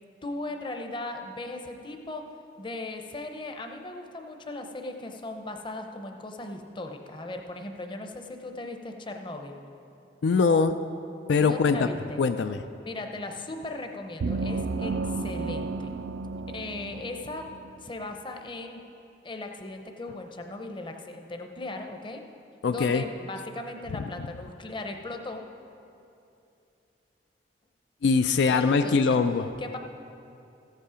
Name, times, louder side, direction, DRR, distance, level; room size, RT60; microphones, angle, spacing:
voice 1, 0.2-2.3 2.6-9.6 11.4-12.2 12.8-15.9 16.5-17.5 17.8-18.8 19.2-22.2 22.7-25.4 28.5-29.2 29.6-29.8, left 2 dB, 25° left, 4 dB, 0.7 m, -38 dB
voice 2, 10.2-10.8 11.3-11.9 12.2-12.6 22.6-23.0 28.0-29.5, left 4 dB, 70° left, 9 dB, 0.4 m, -22 dB
sound 1, 14.2-17.8, right 3 dB, 65° right, 0.4 m, -32 dB
14.0 x 8.2 x 5.0 m, 2.7 s
head